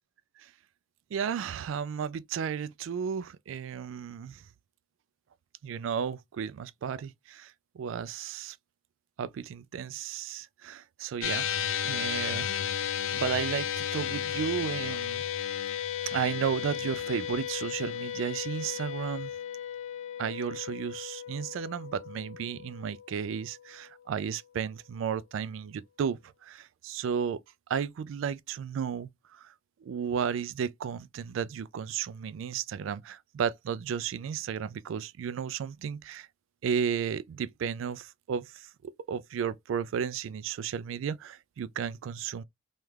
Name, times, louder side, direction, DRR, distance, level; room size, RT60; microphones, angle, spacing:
voice 1, 1.1-4.4 5.6-8.6 9.2-11.5 11.8-12.7 13.1-15.2 16.0-19.3 20.2-27.4 27.7-29.5 29.8-36.3 36.6-42.4, right 7 dB, 75° right, 0.3 m, -33 dB
sound 1, 11.2-23.7, left 9 dB, 90° left, 0.4 m, -34 dB
3.2 x 2.3 x 3.2 m
head